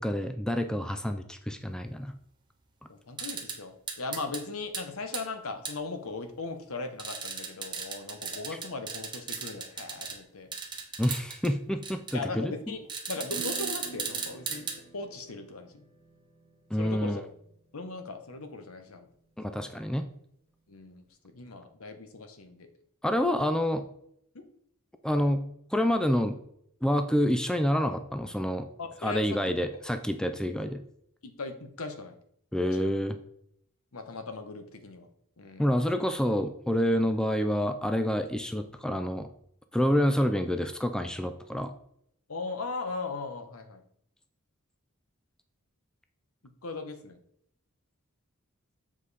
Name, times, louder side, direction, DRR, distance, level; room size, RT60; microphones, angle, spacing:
voice 1, 0.0-2.1 11.0-12.5 16.7-17.2 19.4-20.1 23.0-23.8 25.0-25.4 25.7-26.4 26.8-28.7 29.0-30.8 32.5-33.2 35.6-39.3 39.7-41.7, equal, 5° left, 7 dB, 0.4 m, -28 dB
voice 2, 2.9-10.5 12.1-14.7 14.9-15.8 16.7-17.3 17.7-19.1 19.5-19.6 20.7-22.7 24.3-24.5 28.8-29.8 30.5-30.6 31.2-32.2 32.7-32.9 33.9-35.1 35.4-35.7 42.3-43.8 46.6-47.2, left 3 dB, 70° left, 7 dB, 1.0 m, -38 dB
sound 1, 3.2-3.6 3.9-4.4 4.7-4.8 5.1-5.2 5.6-5.7 7.0-10.2 10.5-11.5 11.8-12.1 12.9-14.8, right 5 dB, 20° right, 1.1 m, -35 dB
Acoustic guitar / Strum, 13.3-20.5, right 5 dB, 45° left, 2.6 m, -50 dB
7.6 x 4.9 x 4.1 m, 0.69 s
head